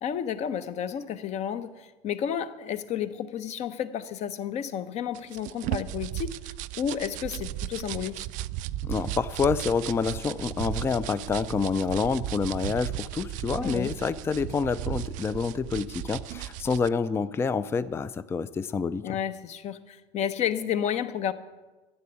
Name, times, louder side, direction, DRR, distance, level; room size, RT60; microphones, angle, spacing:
voice 1, 0.0-8.3 13.6-13.9 19.0-21.3, left 9 dB, 45° left, 12 dB, 0.9 m, -31 dB
sound 1, 5.1-16.9, right 14 dB, 55° right, 0.4 m, -35 dB
voice 2, 8.8-19.1, left 5 dB, 15° left, 15 dB, 0.4 m, -28 dB
12.0 x 6.9 x 9.3 m, 1.2 s
supercardioid pair, 120°, 16 cm